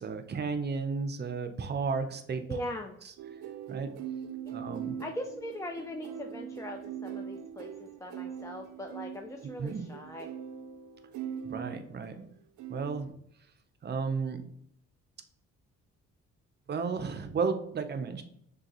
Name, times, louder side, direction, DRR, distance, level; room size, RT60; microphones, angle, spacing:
voice 1, 0.0-2.4 3.7-3.9 4.5-5.0 9.6-9.8 11.4-12.2 12.7-13.1 13.8-14.4 16.7-18.2, right 5 dB, 35° right, 8 dB, 0.6 m, -33 dB
voice 2, 2.5-3.0 4.4-4.5 5.0-10.3, left 1 dB, 10° left, 3 dB, 0.3 m, -40 dB
sound 1, 3.2-12.2 12.6-13.1, right 8 dB, 80° right, 0.5 m, -41 dB
6.4 x 2.3 x 3.0 m, 0.74 s
cardioid pair, 90°, 30 cm